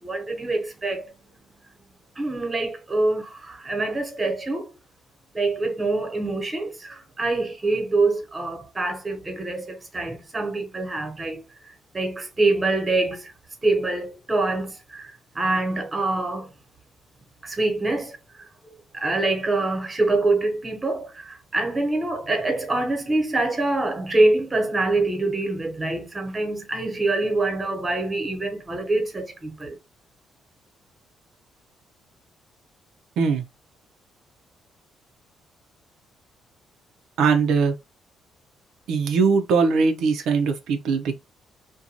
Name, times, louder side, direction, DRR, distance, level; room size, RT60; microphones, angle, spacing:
voice 1, 0.0-1.1 2.2-4.7 5.3-11.4 11.9-13.3 13.6-16.5 17.4-29.8, right 2 dB, 25° right, 1.0 m, -25 dB
voice 2, 37.2-37.7 38.9-41.2, right 5 dB, 80° right, 0.5 m, -21 dB
2.5 x 2.2 x 2.8 m
cardioid pair, 90°, 0 cm